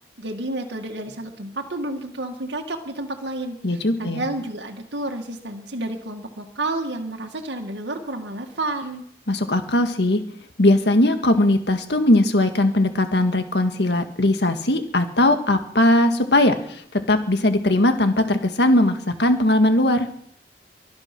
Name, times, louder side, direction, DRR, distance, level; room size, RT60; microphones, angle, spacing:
voice 1, 0.2-9.0, right 2 dB, 75° right, 3 dB, 1.9 m, -30 dB
voice 2, 3.6-4.2 9.3-10.2 10.6-20.1, left 1 dB, 70° left, 7 dB, 1.9 m, -19 dB
23.5 x 9.6 x 6.1 m, 0.68 s
head